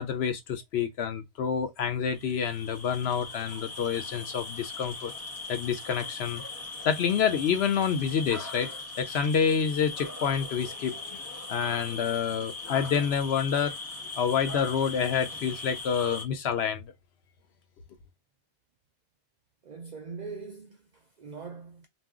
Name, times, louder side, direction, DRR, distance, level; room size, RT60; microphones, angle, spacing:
voice 1, 0.0-5.1 5.5-6.4 6.8-11.0 11.5-13.8 14.2-16.9, left 7 dB, 70° left, 0.8 m, -28 dB
sound 1, 2.1-16.2, left 3 dB, 20° left, 0.5 m, -39 dB
voice 2, 19.6-21.9, right 4 dB, 55° right, 0.5 m, -42 dB
2.5 x 2.0 x 3.5 m
omnidirectional pair, 1.2 m